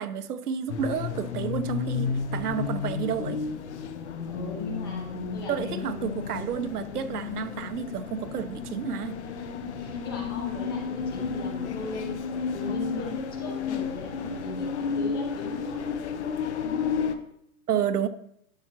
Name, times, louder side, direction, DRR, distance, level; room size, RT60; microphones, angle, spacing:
voice 1, 0.0-3.4 5.5-9.2 17.7-18.1, right 8 dB, 75° right, 0.9 m, -30 dB
sound 1, 0.7-17.1, left 6 dB, 45° left, 0.8 m, -32 dB
voice 2, 4.3-5.9 9.4-15.8 16.6-16.9, left 3 dB, 15° left, 0.6 m, -38 dB
11.5 x 6.1 x 2.9 m
hypercardioid pair, 160°, 46 cm